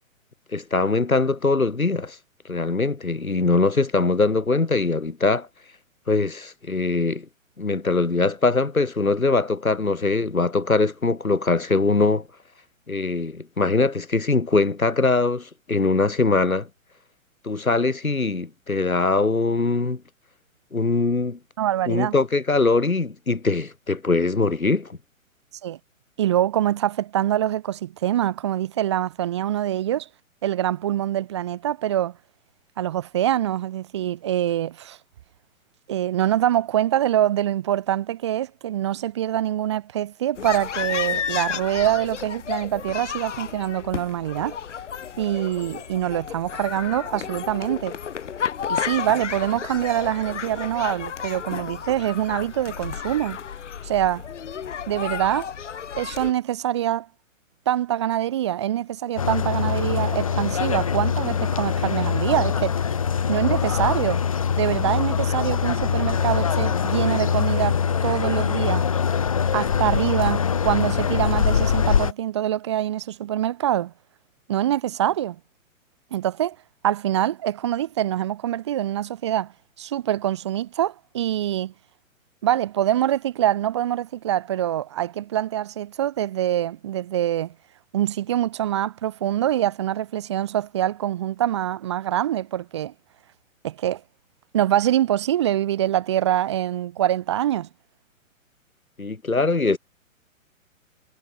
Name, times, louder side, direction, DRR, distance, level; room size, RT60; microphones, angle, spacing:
voice 1, 0.5-2.2 2.5-5.5 6.1-7.3 7.6-12.3 12.9-16.7 17.4-20.0 20.7-21.4 21.9-25.0 99.0-99.8, left 3 dB, 85° left, 2.3 m, -22 dB
voice 2, 21.6-22.1 25.6-25.8 26.2-30.1 30.4-32.1 32.8-35.0 35.9-44.6 45.2-48.0 48.7-53.4 53.8-54.3 54.9-55.5 56.0-57.1 57.7-62.7 63.3-64.2 64.6-68.9 69.5-73.9 74.5-75.4 76.1-76.6 76.8-79.5 79.8-81.7 82.4-87.5 87.9-92.9 93.6-94.0 94.5-97.7, right 12 dB, 20° right, 0.5 m, -24 dB
sound 1, 40.4-56.3, left 8 dB, 60° left, 1.8 m, -32 dB
sound 2, 59.2-72.1, left 7 dB, 25° left, 0.4 m, -23 dB
figure-of-eight pair, 125°, 41 cm